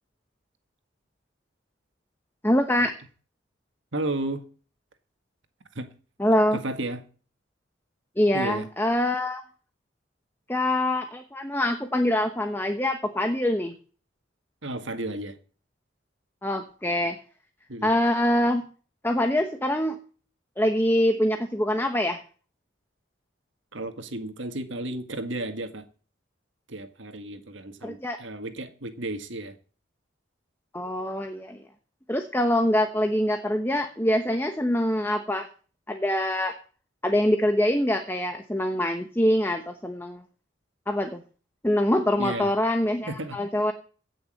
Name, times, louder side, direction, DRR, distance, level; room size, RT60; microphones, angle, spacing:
voice 1, 2.4-2.9 6.2-6.6 8.2-9.4 10.5-13.7 16.4-17.2 17.8-18.7 19.0-20.0 20.6-22.2 27.8-28.2 30.7-31.6 32.1-35.5 35.9-36.5 37.0-40.2 40.9-41.2 41.6-43.7, left 1 dB, 10° left, 0.9 m, -24 dB
voice 2, 3.9-4.4 5.8-5.9 6.5-7.0 8.3-8.7 14.6-15.4 17.7-17.9 23.7-25.8 26.7-29.6 42.2-42.5 43.1-43.4, right 2 dB, 75° right, 1.8 m, -33 dB
16.5 x 6.4 x 7.7 m
head